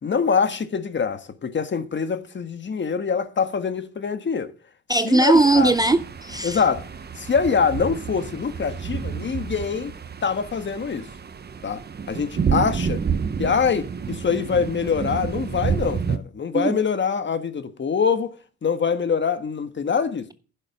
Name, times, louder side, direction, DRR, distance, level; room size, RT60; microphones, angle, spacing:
voice 1, 0.0-4.5 5.0-5.7 6.4-6.9 7.2-10.0 10.2-11.1 11.6-11.8 12.1-13.0 13.4-18.3 18.6-20.3, left 6 dB, 40° left, 1.4 m, -24 dB
voice 2, 4.9-6.6 16.5-16.8, right 2 dB, 15° right, 0.5 m, -19 dB
sound 1, 5.3-16.2, right 6 dB, 35° right, 1.0 m, -29 dB
10.5 x 6.9 x 7.0 m
cardioid pair, 90°, 30 cm